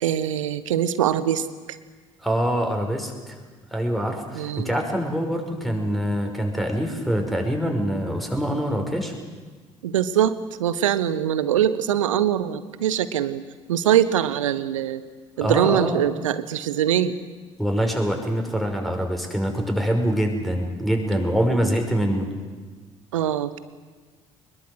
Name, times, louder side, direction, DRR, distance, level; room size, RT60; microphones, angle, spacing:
voice 1, 0.0-1.5 4.3-4.7 9.8-13.4 13.7-15.0 15.4-17.1 23.1-23.6, right 10 dB, 75° right, 15 dB, 1.1 m, -23 dB
voice 2, 2.2-3.4 3.7-9.1 15.4-16.0 17.6-22.3, equal, ahead, 3 dB, 5.7 m, -24 dB
24.0 x 21.5 x 8.1 m, 1.4 s
figure-of-eight pair, 55°, 17 cm